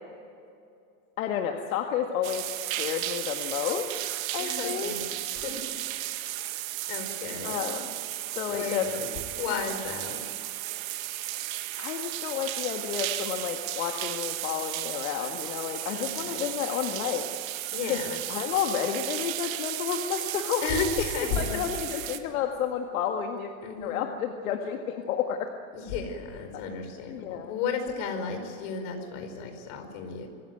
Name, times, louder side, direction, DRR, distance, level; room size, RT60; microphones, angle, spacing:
voice 1, 1.2-2.5 2.8-3.9 4.3-4.9 7.4-8.0 8.4-8.9 11.8-17.3 17.9-18.0 18.3-20.6 21.3-23.5 23.8-25.5 27.1-27.6, left 9 dB, 85° left, 4 dB, 1.9 m, -31 dB
sound 1, 2.2-22.2, right 14 dB, 80° right, 1.7 m, -34 dB
voice 2, 4.4-5.1 5.4-5.6 5.9-6.4 6.9-7.7 8.5-9.1 9.4-10.2 15.9-16.5 17.7-18.2 20.6-21.6 21.9-22.0 23.6-24.0 25.7-30.3, left 5 dB, 60° left, 6 dB, 5.1 m, -33 dB
25.0 x 15.5 x 9.3 m, 2.5 s
supercardioid pair, 140°, 40 cm